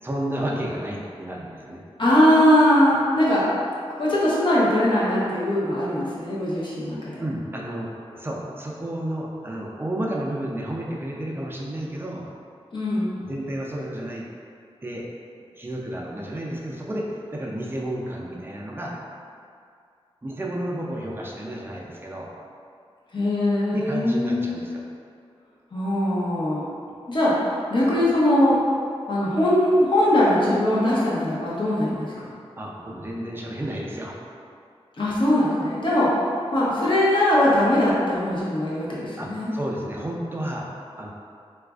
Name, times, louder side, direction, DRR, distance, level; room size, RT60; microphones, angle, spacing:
voice 1, 0.0-1.8 7.2-12.3 13.2-14.3 14.8-15.0 15.6-18.9 20.2-22.3 23.7-24.8 32.6-34.2 39.2-40.7 41.0-41.1, right 1 dB, 20° right, -3 dB, 0.4 m, -31 dB
voice 2, 2.0-3.4 4.0-7.2 12.7-13.2 23.1-24.6 25.7-26.6 27.1-28.6 29.1-32.2 35.0-36.1 36.5-39.5, left 1 dB, 50° left, -7 dB, 0.8 m, -21 dB
3.9 x 2.4 x 2.3 m, 2.3 s
wide cardioid pair, 115°, 11 cm